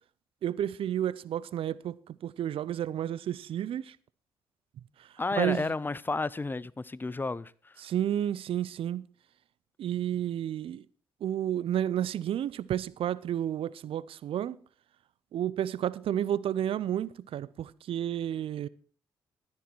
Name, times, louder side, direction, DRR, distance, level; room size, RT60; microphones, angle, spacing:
voice 1, 0.4-4.0 5.3-5.7 7.8-9.1 9.8-10.8 11.2-14.6 15.3-18.7, right 10 dB, 65° right, 0.6 m, -31 dB
voice 2, 5.2-7.7, left 3 dB, 20° left, 0.6 m, -32 dB
12.0 x 10.0 x 4.6 m
supercardioid pair, 55°, 10 cm